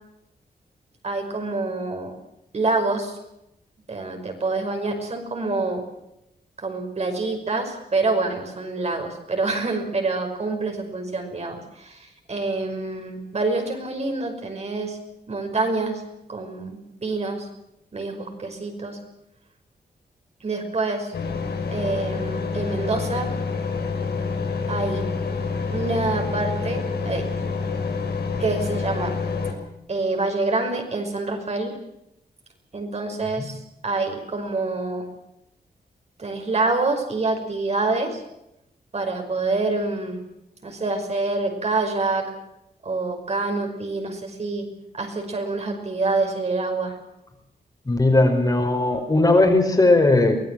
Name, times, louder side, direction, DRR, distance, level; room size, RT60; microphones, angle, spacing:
voice 1, 1.0-2.1 2.5-3.2 3.9-5.8 6.6-15.0 15.3-16.0 16.3-17.5 17.9-19.0 20.4-21.1 21.7-23.3 24.7-25.1 25.7-27.3 28.4-29.2 29.9-31.7 32.7-35.1 36.2-38.2 38.9-40.2 40.6-42.3 42.8-44.7 44.9-47.0, right 3 dB, 40° right, 4 dB, 5.6 m, -26 dB
sound 1, 21.1-29.5, left 4 dB, 80° left, 5.5 m, -27 dB
voice 2, 47.8-50.4, left 2 dB, 25° left, 4 dB, 4.7 m, -18 dB
24.5 x 19.0 x 7.5 m, 0.85 s
wide cardioid pair, 140°, 16 cm